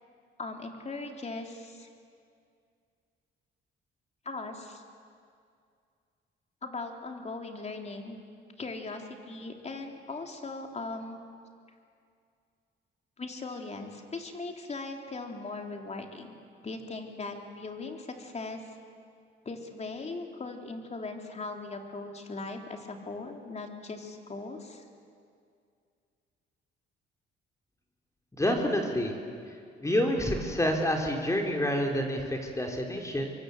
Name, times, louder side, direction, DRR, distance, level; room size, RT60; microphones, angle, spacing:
voice 1, 0.4-1.9 4.3-4.8 6.6-8.2 8.6-11.2 13.2-16.4 16.6-18.7 19.4-24.8, left 3 dB, 35° left, 3 dB, 3.5 m, -39 dB
voice 2, 28.4-29.2 29.8-33.3, left 1 dB, 15° left, 2 dB, 3.6 m, -28 dB
25.5 x 23.0 x 8.0 m, 2.3 s
cardioid pair, 90°, 20 cm